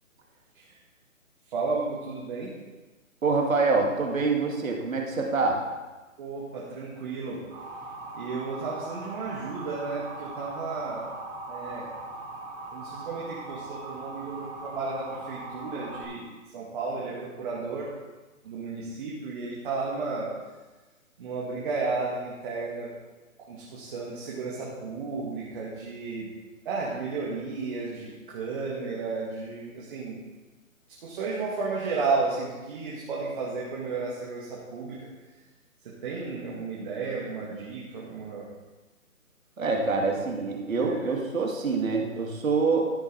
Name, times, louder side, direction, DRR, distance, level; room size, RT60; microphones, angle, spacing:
voice 1, 1.5-2.5 6.2-7.4 8.1-11.0 11.5-11.9 12.7-17.9 18.4-20.3 21.2-22.9 23.5-26.3 26.7-30.2 31.0-35.0 36.0-38.4 40.8-41.1, right 4 dB, 35° right, -5 dB, 2.2 m, -33 dB
voice 2, 3.2-5.6 39.6-42.9, right 4 dB, 70° right, 0 dB, 2.4 m, -25 dB
Motor vehicle (road) / Siren, 7.5-16.0, right 2 dB, 10° right, 2.5 m, -40 dB
13.0 x 6.8 x 4.7 m, 1.2 s
hypercardioid pair, 155°, 41 cm